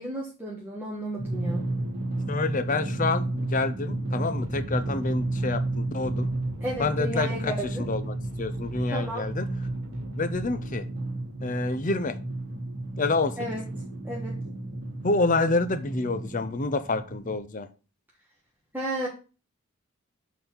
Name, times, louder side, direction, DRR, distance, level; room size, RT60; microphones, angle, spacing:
voice 1, 0.0-1.6 6.6-7.8 8.9-9.3 13.4-13.7 14.0-14.4 18.7-19.1, right 1 dB, 10° right, -4 dB, 1.3 m, -33 dB
Drum, 1.2-17.3, right 2 dB, 45° right, 2.0 m, -32 dB
voice 2, 2.3-6.3 6.8-7.5 7.9-9.5 10.2-10.9 11.4-12.2 13.0-13.4 15.0-17.7, left 3 dB, 35° left, 12 dB, 0.6 m, -28 dB
sound 1, 4.4-10.8, right 1 dB, 75° right, 1.5 m, -45 dB
6.9 x 4.1 x 5.7 m, 0.34 s
head